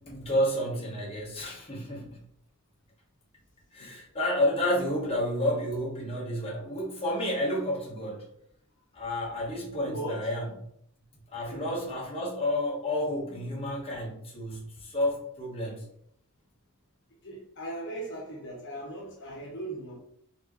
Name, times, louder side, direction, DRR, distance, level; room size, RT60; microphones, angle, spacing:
voice 1, 0.0-2.2 3.7-8.3 8.9-10.5 11.3-15.9, left 1 dB, 30° left, -4 dB, 1.2 m, -30 dB
voice 2, 9.9-10.3 11.4-11.8 17.2-20.0, right 1 dB, 60° left, -2 dB, 1.0 m, -38 dB
4.4 x 2.9 x 3.0 m, 0.71 s
head